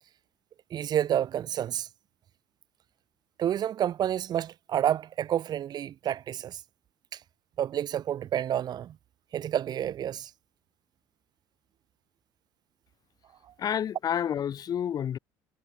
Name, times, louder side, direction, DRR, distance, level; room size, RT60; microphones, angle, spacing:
voice 1, 0.7-1.9 3.4-6.6 7.1-7.2 7.6-9.0 9.3-10.3, right 10 dB, 50° right, 3.3 m, -29 dB
voice 2, 13.6-15.2, left 9 dB, 45° left, 6.2 m, -29 dB
supercardioid pair, 90°, 9 cm